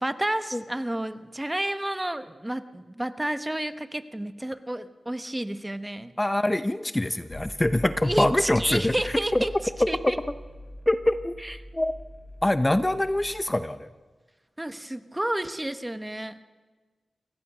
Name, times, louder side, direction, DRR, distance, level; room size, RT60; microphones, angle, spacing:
voice 1, 0.0-6.1 8.0-9.5 9.9-10.2 11.4-11.5 14.6-16.4, right 1 dB, 15° right, 11 dB, 1.0 m, -30 dB
voice 2, 6.2-9.4 9.8-10.1 10.9-11.3 11.7-11.9 12.4-13.9, left 1 dB, 20° left, 11 dB, 0.7 m, -24 dB
sound 1, 7.3-13.4, left 1 dB, 75° left, 3.1 m, -42 dB
28.5 x 15.5 x 6.1 m, 1.3 s
cardioid pair, 65°, 0 cm